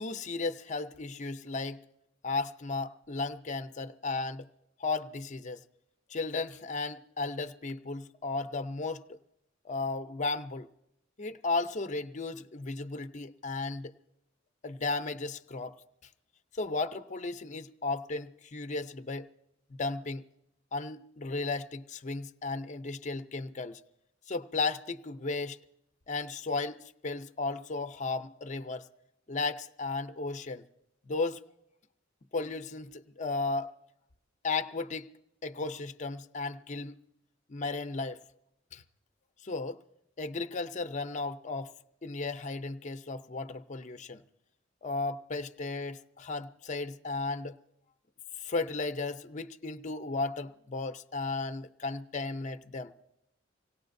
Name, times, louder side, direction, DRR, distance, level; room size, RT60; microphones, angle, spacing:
voice 1, 0.0-1.8 2.2-4.5 4.8-5.6 6.1-9.2 9.6-10.7 11.2-13.9 14.6-15.8 16.5-19.3 19.8-20.2 20.7-23.8 24.3-25.6 26.1-28.9 29.3-30.7 31.0-31.4 32.3-33.7 34.4-35.1 35.4-36.9 37.5-38.2 38.7-38.8 39.4-39.8 40.2-41.7 42.0-44.2 44.8-47.6 48.4-52.9, left 3 dB, 40° left, 0.6 m, -35 dB
25.0 x 18.0 x 2.6 m
head